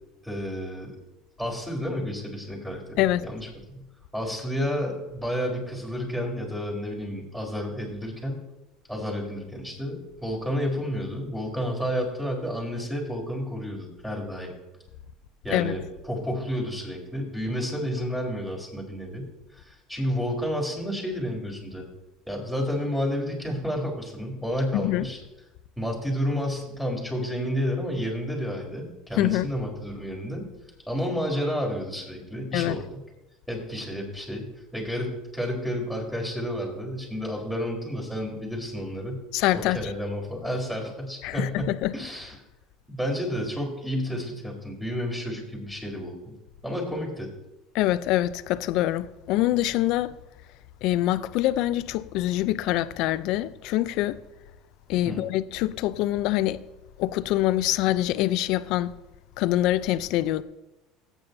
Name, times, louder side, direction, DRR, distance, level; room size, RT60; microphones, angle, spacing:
voice 1, 0.2-0.9 1.4-3.8 4.1-8.4 8.9-14.5 15.4-19.3 19.5-21.9 22.3-25.2 25.8-30.4 30.9-32.8 33.5-39.2 39.5-42.4 42.9-46.3 46.6-47.3 55.0-55.2, equal, 5° right, 4.0 m, -31 dB
voice 2, 24.7-25.1 29.2-29.5 32.5-32.8 39.3-39.9 41.2-41.9 47.7-50.2 50.8-54.2 54.9-56.6 57.0-58.9 59.4-60.4, left 14 dB, 65° left, 0.5 m, -25 dB
17.0 x 9.0 x 2.7 m
supercardioid pair, 105°, 0 cm